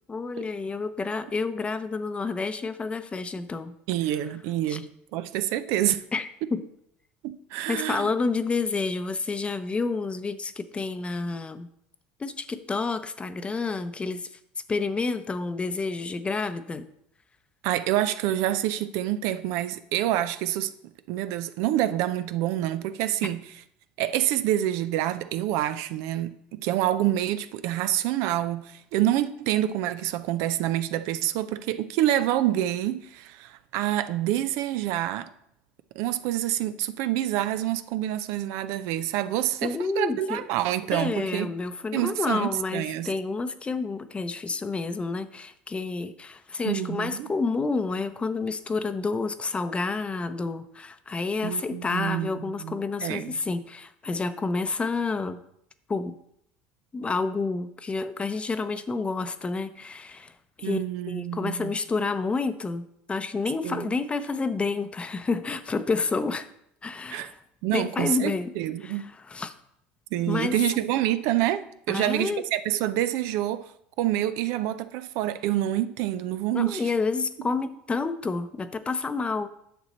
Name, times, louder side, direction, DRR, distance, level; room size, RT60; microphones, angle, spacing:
voice 1, 0.1-3.7 4.7-4.8 6.1-6.6 7.7-11.7 12.2-14.3 14.7-16.9 39.6-40.4 40.9-55.4 55.9-56.1 56.9-60.3 60.6-66.5 66.8-67.4 67.7-68.5 68.8-69.5 70.3-70.6 71.9-72.4 76.5-79.5, left 4 dB, 20° left, 0.7 m, -29 dB
voice 2, 3.9-6.0 7.2-8.1 17.6-20.7 21.1-23.4 24.0-35.3 36.0-41.5 41.9-43.1 46.6-47.3 51.4-53.4 60.6-61.7 63.6-63.9 67.1-67.3 67.6-69.0 70.1-73.7 74.0-76.9, right 13 dB, 70° right, 0.5 m, -27 dB
9.3 x 6.3 x 4.2 m
supercardioid pair, 90°, 5 cm